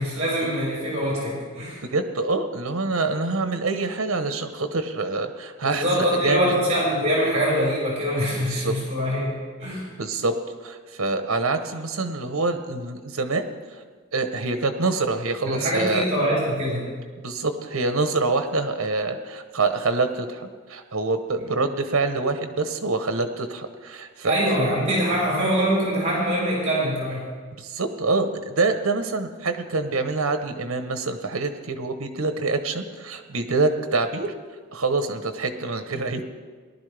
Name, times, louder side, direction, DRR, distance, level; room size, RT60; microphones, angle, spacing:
voice 1, 0.0-1.8 5.6-9.8 15.5-16.9 24.2-27.2, equal, 35° right, -5 dB, 4.5 m, -24 dB
voice 2, 1.9-6.5 8.4-8.7 9.9-10.3 10.6-13.5 14.1-16.1 17.2-24.3 27.6-34.3 34.7-36.2, right 3 dB, 80° right, 8 dB, 1.0 m, -26 dB
18.5 x 11.5 x 3.4 m, 1.5 s
head